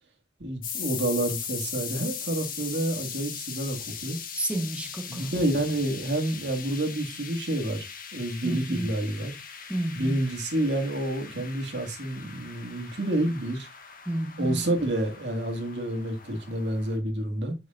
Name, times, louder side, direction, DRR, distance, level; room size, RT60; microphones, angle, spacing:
voice 1, 0.4-4.2 5.1-7.9 8.1-9.4 9.9-13.7 14.4-17.5, right 1 dB, 75° right, 2.0 m, -29 dB
sound 1, 0.6-17.0, left 7 dB, 55° left, 1.6 m, -40 dB
voice 2, 4.3-5.3 8.4-8.9 9.7-10.2 14.1-14.6, right 1 dB, 5° right, 1.3 m, -30 dB
7.7 x 5.9 x 2.5 m
head